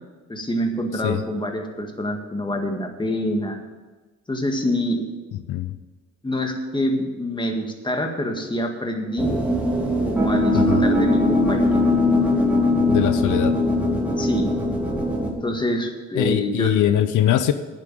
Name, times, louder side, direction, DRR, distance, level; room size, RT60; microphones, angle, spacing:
voice 1, 0.3-3.6 4.3-5.1 6.2-9.3 10.1-11.8 14.2-14.5 15.4-16.8, equal, 15° left, 3 dB, 1.9 m, -26 dB
voice 2, 0.9-1.2 5.3-5.8 10.5-10.9 12.9-13.6 16.2-17.5, left 11 dB, 80° left, 11 dB, 0.7 m, -22 dB
sound 1, 9.2-15.3, left 1 dB, 5° right, 2.7 m, -20 dB
9.5 x 7.5 x 9.2 m, 1.3 s
cardioid pair, 90°, 30 cm